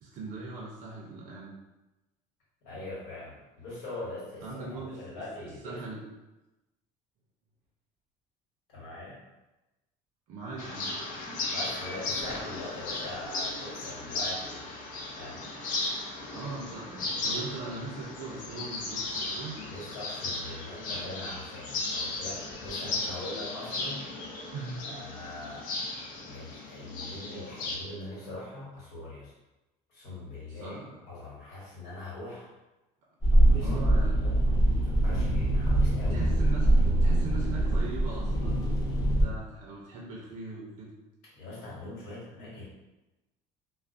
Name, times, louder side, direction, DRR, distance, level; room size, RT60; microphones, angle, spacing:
voice 1, 0.0-1.5 2.7-2.8 4.4-6.0 10.3-10.9 16.3-19.6 24.5-25.0 25.5-25.9 30.5-31.0 33.6-34.2 35.7-35.8 36.1-40.9, right 3 dB, 65° right, -3 dB, 0.5 m, -40 dB
voice 2, 2.6-5.8 8.7-9.2 11.5-14.8 15.2-15.5 19.7-24.1 24.8-25.7 26.2-29.3 29.9-30.8 31.0-32.5 33.3-34.3 34.8-36.3 41.3-42.7, left 2 dB, 85° left, -7 dB, 1.2 m, -42 dB
sound 1, 10.6-27.8, left 2 dB, 60° left, 0.5 m, -36 dB
sound 2, 33.2-39.2, right 1 dB, 25° left, 0.7 m, -24 dB
2.4 x 2.1 x 2.5 m, 1.0 s
cardioid pair, 110°, 15 cm